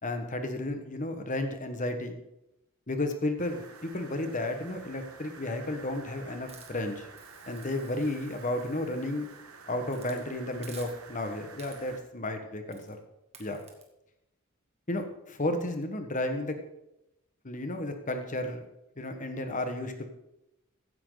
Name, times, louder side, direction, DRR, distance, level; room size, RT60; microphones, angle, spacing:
voice 1, 0.0-2.2 2.9-7.1 7.5-9.3 9.7-13.0 13.4-13.6 14.9-16.6 17.4-18.6 19.0-20.1, left 1 dB, 35° left, 6 dB, 1.5 m, -33 dB
sound 1, 3.4-12.0, right 5 dB, 90° right, 1.6 m, -50 dB
Hiss, 6.5-9.4 9.9-10.2 10.6-11.2 11.6-12.1 12.7-13.0 13.3-13.8, right 5 dB, 30° right, 2.1 m, -54 dB
15.5 x 10.5 x 4.0 m, 0.88 s
head